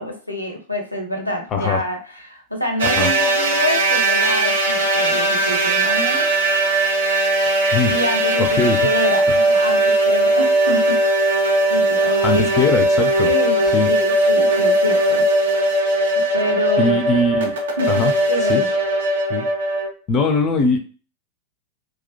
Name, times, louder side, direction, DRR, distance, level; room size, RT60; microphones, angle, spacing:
voice 1, 0.0-6.6 7.9-11.4 11.7-12.7 13.2-15.3 16.1-17.2 17.8-18.7, left 1 dB, 90° left, 3 dB, 0.5 m, -27 dB
voice 2, 1.5-1.8 3.0-3.1 7.7-8.0 8.5-8.8 9.3-9.4 12.2-13.3 13.7-13.9 16.8-17.5 17.9-18.1 18.5-18.6 19.3-19.4 20.1-20.8, left 3 dB, 30° left, 6 dB, 0.3 m, -20 dB
sound 1, 2.8-19.9, right 1 dB, 65° right, 0.5 m, -18 dB
2.3 x 2.1 x 2.6 m, 0.38 s
figure-of-eight pair, 90°, 0 cm